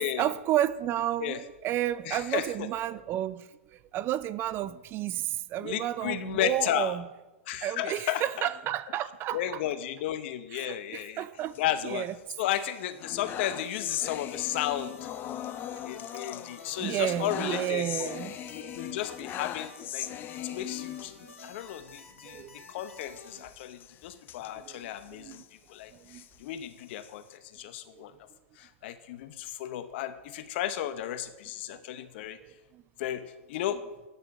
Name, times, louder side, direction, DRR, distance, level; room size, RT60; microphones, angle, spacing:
voice 1, 0.0-7.1 7.6-9.6 10.5-11.6 11.8-12.1 16.8-18.3 20.5-20.6 21.2-21.5 22.3-22.6 24.6-25.4 25.9-26.2 27.9-28.0 31.7-31.8 32.4-32.8, right 12 dB, 30° right, 0.4 m, -32 dB
voice 2, 2.0-2.7 5.6-7.0 7.5-8.5 9.3-11.2 11.6-12.1 12.4-15.1 15.8-18.1 18.5-20.1 20.4-21.1 21.4-25.4 25.7-28.1 28.6-32.4 33.0-33.8, left 12 dB, 50° left, 0.9 m, -34 dB
sound 1, 11.4-12.3 12.7-21.5 21.9-22.0 22.3-22.4 22.9-25.5 25.9-27.3, left 11 dB, 25° left, 0.5 m, -40 dB
sound 2, 13.6-23.4, left 3 dB, 90° left, 1.7 m, -51 dB
9.6 x 6.7 x 6.5 m
hypercardioid pair, 115°, 7 cm